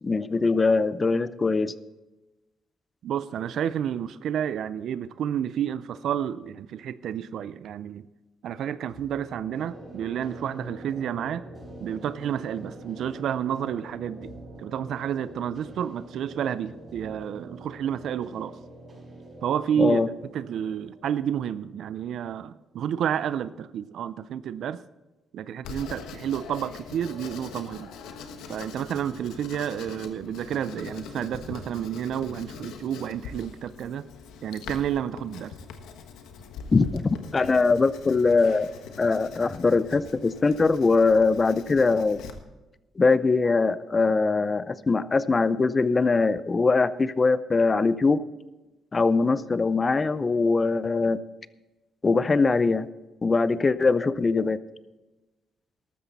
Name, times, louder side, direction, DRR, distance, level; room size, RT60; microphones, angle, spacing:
voice 1, 0.0-1.7 19.8-20.1 36.7-38.7 39.0-42.2 43.0-48.2 48.9-51.2 52.0-52.9 53.2-54.6, left 4 dB, 30° left, 15 dB, 0.6 m, -22 dB
voice 2, 3.0-8.1 8.4-11.4 11.8-14.3 14.6-18.6 19.4-20.1 20.3-24.8 25.3-27.9 28.5-34.1 34.4-35.5, right 9 dB, 70° right, 15 dB, 0.5 m, -30 dB
sound 1, 8.9-22.6, right 1 dB, 40° right, 5.6 m, -45 dB
Writing, 25.6-42.3, left 5 dB, 90° left, 1.3 m, -42 dB
14.0 x 12.5 x 4.1 m, 1.1 s
cardioid pair, 90°, 0 cm